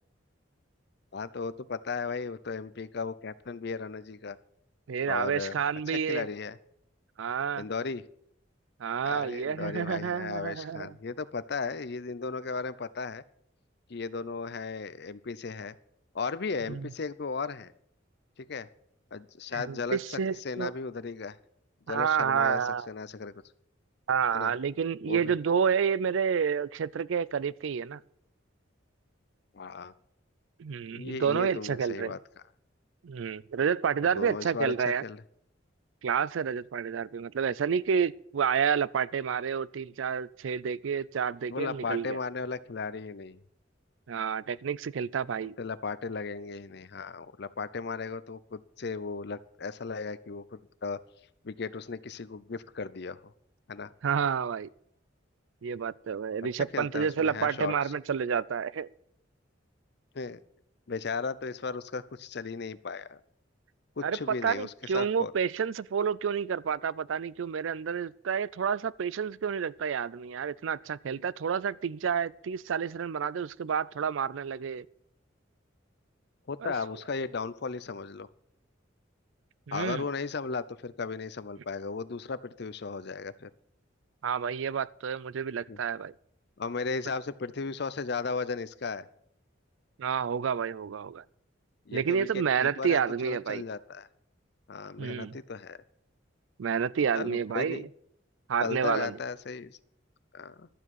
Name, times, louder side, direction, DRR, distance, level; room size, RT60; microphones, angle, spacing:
voice 1, 1.1-4.4 5.0-5.6 6.1-6.6 7.6-8.0 9.0-13.2 13.9-15.7 16.1-17.7 18.4-18.7 19.1-20.2 20.4-21.4 21.9-22.6 22.9-23.3 24.3-24.5 25.1-25.3 29.5-29.9 30.9-32.2 34.1-34.7 35.0-35.2 41.5-43.4 45.6-51.0 51.4-53.2 53.7-53.9 56.4-56.5 56.7-57.7 60.1-60.4 60.9-63.2 64.0-65.3 76.5-78.3 79.7-83.5 85.7-85.8 86.6-89.1 91.9-94.1 94.7-95.8 97.1-97.9 98.6-99.8 100.3-100.7, left 4 dB, 60° left, 0.6 m, -36 dB
voice 2, 4.9-6.3 7.2-7.7 8.8-11.0 16.7-16.9 19.5-20.7 21.9-22.9 24.1-28.0 30.6-32.1 33.0-35.0 36.0-42.2 44.1-45.5 54.0-54.7 55.6-58.9 64.0-74.9 76.6-76.7 79.7-80.1 84.2-86.1 90.0-91.2 91.9-93.6 95.0-95.4 96.6-97.9 98.5-99.2, right 7 dB, 80° right, 0.4 m, -29 dB
12.0 x 7.4 x 8.0 m
head